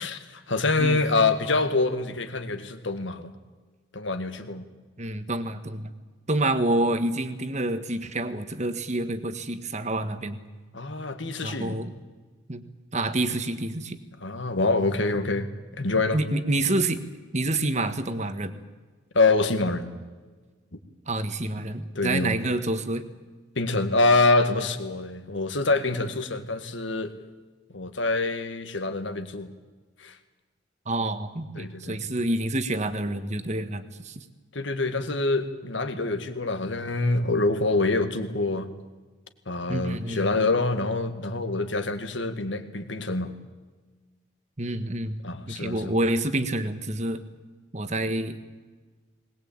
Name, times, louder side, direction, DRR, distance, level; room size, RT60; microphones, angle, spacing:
voice 1, 0.0-3.3 3.9-4.7 10.7-11.8 14.2-15.5 15.7-16.2 19.1-19.9 22.0-22.4 23.6-27.1 27.7-29.5 30.0-30.2 31.6-32.0 34.5-38.7 39.5-43.3 45.2-45.9, left 3 dB, 65° left, 8 dB, 2.0 m, -25 dB
voice 2, 5.0-5.9 6.3-10.4 11.4-11.9 12.5-12.6 12.9-14.0 16.1-17.0 17.3-18.6 21.1-23.0 30.8-34.2 39.7-40.5 44.6-45.2 45.5-47.2 47.7-48.4, right 2 dB, 35° right, 10 dB, 1.5 m, -28 dB
21.0 x 20.0 x 8.8 m, 1.3 s
head